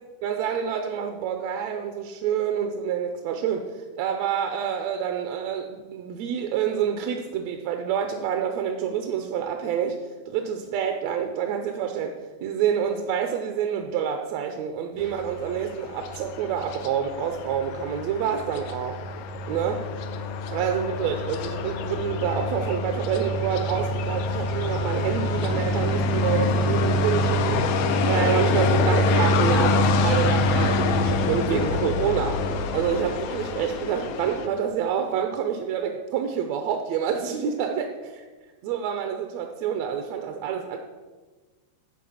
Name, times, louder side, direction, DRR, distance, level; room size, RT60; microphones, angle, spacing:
voice 1, 0.2-10.0 10.3-12.2 12.4-19.0 19.5-19.9 20.5-38.2 38.6-40.8, right 8 dB, 75° right, 5 dB, 1.7 m, -27 dB
sound 1, 15.0-34.5, left 2 dB, 75° left, 1.5 m, -25 dB
11.0 x 4.4 x 7.1 m, 1.3 s
omnidirectional pair, 3.4 m